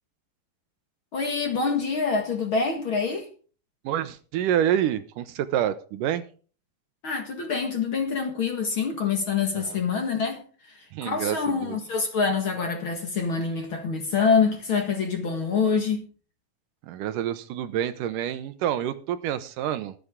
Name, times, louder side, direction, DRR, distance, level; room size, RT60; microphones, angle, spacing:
voice 1, 1.1-3.3 7.0-16.0, left 5 dB, 45° left, 2.0 m, -26 dB
voice 2, 3.8-6.2 9.5-9.8 10.9-11.8 16.8-19.9, right 10 dB, 75° right, 2.3 m, -27 dB
23.0 x 8.0 x 3.6 m
omnidirectional pair, 4.0 m